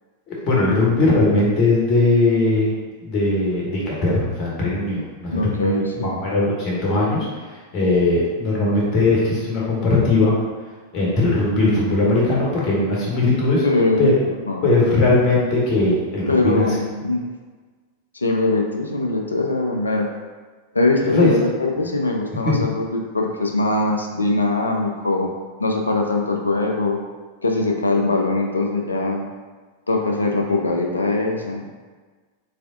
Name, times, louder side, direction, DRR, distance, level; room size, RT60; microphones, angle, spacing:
voice 1, 0.3-2.7 3.0-10.3 10.9-13.6 14.0-14.1 14.6-16.7 21.0-21.3 22.4-22.6, left 2 dB, 40° left, -4 dB, 1.1 m, -19 dB
voice 2, 5.3-6.2 13.6-14.1 14.5-14.7 16.3-17.2 18.1-20.1 20.7-25.3 25.6-27.0 27.4-29.3 29.9-31.7, left 2 dB, 80° left, 2 dB, 0.4 m, -21 dB
3.2 x 3.2 x 2.6 m, 1.4 s
figure-of-eight pair, 90°, 0 cm